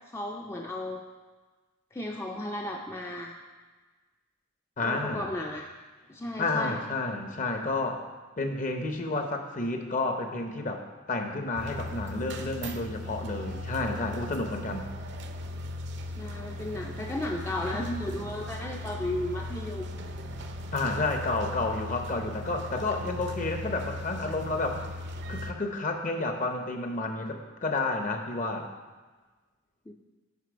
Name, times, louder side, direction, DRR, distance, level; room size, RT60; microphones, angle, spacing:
voice 1, 0.1-1.0 1.9-3.3 4.8-5.7 6.1-6.8 16.2-19.9 29.9-30.0, left 1 dB, 15° left, 0 dB, 0.4 m, -34 dB
voice 2, 4.8-5.3 6.4-8.1 8.4-10.8 11.1-14.9 20.7-24.8 25.3-28.7, left 2 dB, 40° left, 5 dB, 0.8 m, -30 dB
sound 1, 11.5-25.5, left 1 dB, 60° right, 0.6 m, -38 dB
8.3 x 5.1 x 5.1 m, 1.3 s
head